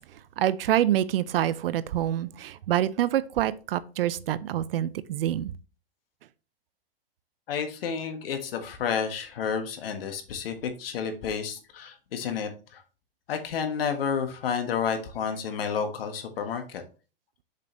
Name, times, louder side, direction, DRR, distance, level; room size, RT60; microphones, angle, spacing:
voice 1, 0.4-5.5, right 12 dB, 70° right, 0.6 m, -26 dB
voice 2, 7.5-12.8 13.3-16.8, left 6 dB, 75° left, 1.5 m, -30 dB
6.7 x 5.2 x 3.0 m
hypercardioid pair, 120°, 29 cm